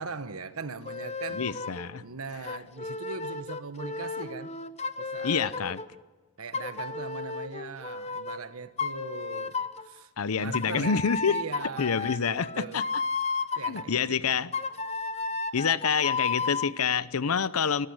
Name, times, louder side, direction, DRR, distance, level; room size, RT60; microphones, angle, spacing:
voice 1, 0.0-1.4 2.0-4.5 5.0-5.6 6.4-10.1 10.4-11.0 11.3-12.8 13.5-14.4, right 4 dB, 80° right, 1.2 m, -40 dB
sound 1, 0.9-1.9 2.4-5.9 6.5-8.4 8.8-9.9 10.5-13.8 14.5-16.7, left 4 dB, 30° left, 0.9 m, -33 dB
voice 2, 1.3-2.0 5.2-5.8 10.2-11.4 11.8-12.8 13.7-14.5 15.5-17.9, left 6 dB, 90° left, 0.7 m, -27 dB
27.5 x 14.0 x 8.1 m
head